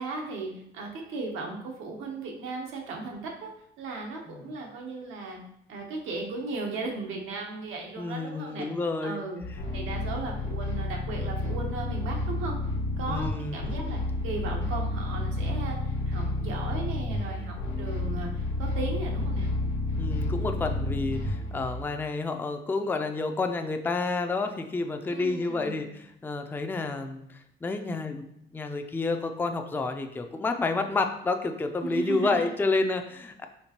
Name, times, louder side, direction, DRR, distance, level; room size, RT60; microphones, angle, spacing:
voice 1, 0.0-3.5 3.8-5.4 5.7-8.7 9.0-9.4 9.7-12.6 12.9-18.3 18.6-19.5 25.1-25.8 31.8-32.5, right 3 dB, 90° right, 1 dB, 0.9 m, -36 dB
voice 2, 8.0-9.2 13.1-13.7 20.0-28.3 28.5-33.5, left 3 dB, 10° left, 6 dB, 0.3 m, -30 dB
sound 1, 9.4-21.9, left 2 dB, 70° left, 0.9 m, -30 dB
4.4 x 3.1 x 2.9 m, 0.77 s
cardioid pair, 90°, 20 cm